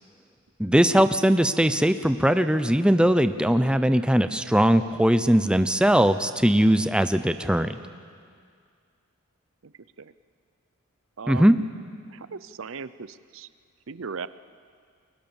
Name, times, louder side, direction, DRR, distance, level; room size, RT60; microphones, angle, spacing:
voice 1, 0.6-7.7 11.3-11.6, equal, 5° right, 10 dB, 0.7 m, -20 dB
voice 2, 11.2-11.6 12.1-13.5 13.9-14.3, right 5 dB, 65° right, 15 dB, 0.6 m, -37 dB
30.0 x 22.5 x 7.2 m, 2.1 s
head